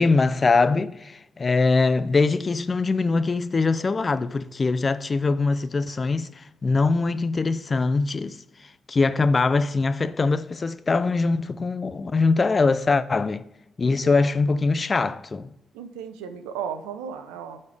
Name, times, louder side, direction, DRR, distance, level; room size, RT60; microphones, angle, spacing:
voice 1, 0.0-8.4 8.9-13.4 13.8-15.5, left 3 dB, 40° left, 0.5 m, -22 dB
voice 2, 13.8-14.2 15.7-17.6, right 7 dB, 90° right, 0.6 m, -35 dB
11.5 x 4.3 x 3.3 m
supercardioid pair, 50°, 0 cm